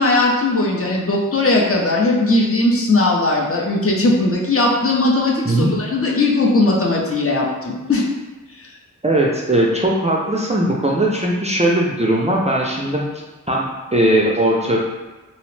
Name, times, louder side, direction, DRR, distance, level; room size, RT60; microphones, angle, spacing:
voice 1, 0.0-8.1, left 2 dB, 45° left, -2 dB, 0.6 m, -18 dB
voice 2, 9.0-13.1 13.5-14.8, right 1 dB, 20° right, -3 dB, 0.4 m, -18 dB
2.8 x 2.0 x 3.1 m, 1.2 s
wide cardioid pair, 60°, 33 cm